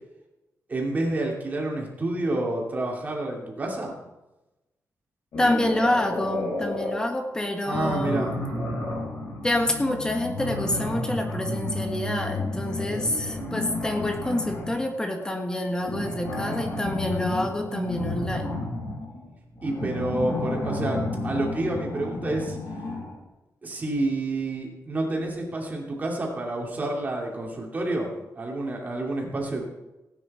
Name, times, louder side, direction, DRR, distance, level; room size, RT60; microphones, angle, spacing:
voice 1, 0.7-3.9 7.6-8.3 19.6-22.6 23.6-28.1 28.3-29.7, right 2 dB, 30° right, -1 dB, 2.7 m, -29 dB
sound 1, 5.3-7.0 7.7-14.8 15.8-23.2, left 2 dB, 75° left, 5.2 m, -31 dB
voice 2, 5.4-8.4 9.4-18.6, left 1 dB, 15° left, 3 dB, 1.6 m, -27 dB
17.0 x 9.4 x 4.3 m, 1.0 s
wide cardioid pair, 170°, 6 cm